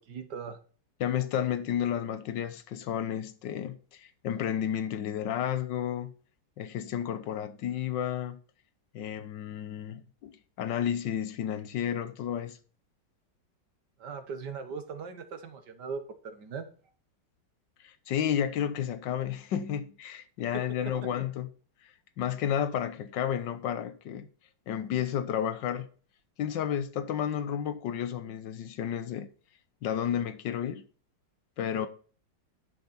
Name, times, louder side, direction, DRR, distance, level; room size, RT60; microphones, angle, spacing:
voice 1, 0.1-0.6 14.0-16.7 20.5-20.6 31.8-31.9, right 5 dB, 70° right, 1.9 m, -39 dB
voice 2, 1.0-6.1 6.6-8.4 8.9-12.6 17.8-21.5 22.2-24.3 24.7-25.9 26.4-29.3 29.8-30.8 31.6-31.9, left 9 dB, 80° left, 1.5 m, -32 dB
10.0 x 6.9 x 4.3 m
omnidirectional pair, 1.9 m